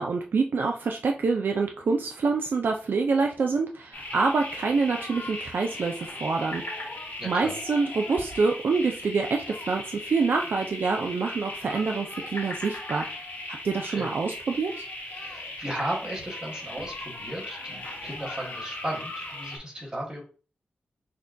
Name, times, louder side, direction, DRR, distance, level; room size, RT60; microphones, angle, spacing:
voice 1, 0.0-6.9 7.2-13.1 13.6-14.9, right 4 dB, 65° right, 3 dB, 0.3 m, -26 dB
sound 1, 3.9-19.6, left 2 dB, 60° left, 1.1 m, -38 dB
voice 2, 7.2-7.5 13.9-14.1 15.1-20.2, right 1 dB, 20° right, -3 dB, 1.6 m, -35 dB
5.7 x 2.2 x 2.6 m, 0.38 s
wide cardioid pair, 135°, 4 cm